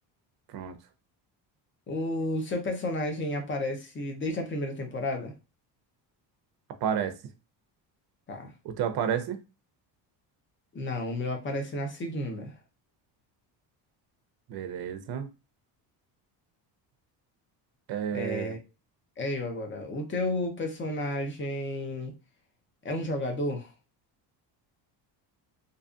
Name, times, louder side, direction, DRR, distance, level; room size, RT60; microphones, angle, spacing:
voice 1, 1.9-5.3 8.3-8.5 10.7-12.5 18.1-18.6 19.2-22.1 22.8-23.7, left 1 dB, 25° left, 0.7 m, -32 dB
voice 2, 6.8-7.2 8.6-9.4 14.5-15.3 17.9-18.5, right 8 dB, 55° right, 0.6 m, -31 dB
2.7 x 2.4 x 2.5 m
cardioid pair, 115°, 44 cm